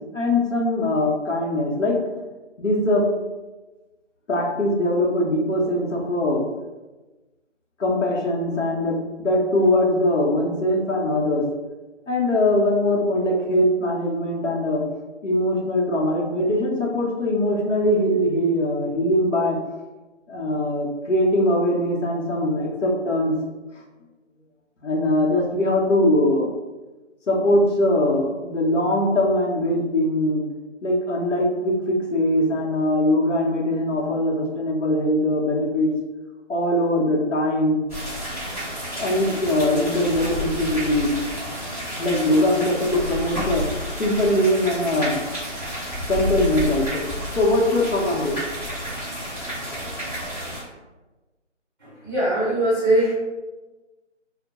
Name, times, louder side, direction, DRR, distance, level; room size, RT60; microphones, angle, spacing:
voice 1, 0.1-2.0 2.6-3.1 4.3-6.5 7.8-11.5 12.1-14.8 15.2-19.6 20.3-23.4 24.8-26.5 27.3-30.4 30.8-35.9 36.5-37.8 39.0-41.1 42.0-43.7 44.0-45.2 46.1-47.0 47.4-48.4, left 1 dB, 75° left, -2 dB, 0.8 m, -21 dB
sound 1, 37.9-50.6, equal, 15° left, 1.2 m, -30 dB
voice 2, 51.8-53.1, right 1 dB, 15° right, -7 dB, 1.0 m, -21 dB
2.2 x 2.0 x 2.8 m, 1.2 s
figure-of-eight pair, 165°, 37 cm